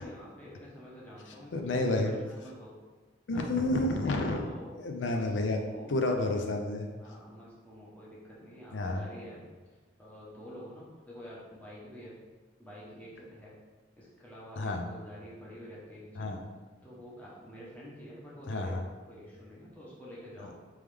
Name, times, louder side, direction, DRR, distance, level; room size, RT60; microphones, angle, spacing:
voice 1, 0.0-2.7 3.3-3.6 4.3-4.8 5.1-6.0 7.0-9.4 10.0-12.2 12.6-13.5 14.0-16.3 16.8-20.6, equal, 10° left, -7 dB, 0.9 m, -48 dB
voice 2, 1.5-2.1 3.3-4.4 4.8-6.9 8.7-9.1 14.6-14.8 16.2-16.4 18.5-18.8, left 2 dB, 90° left, 3 dB, 0.5 m, -30 dB
3.5 x 3.1 x 3.3 m, 1.3 s
head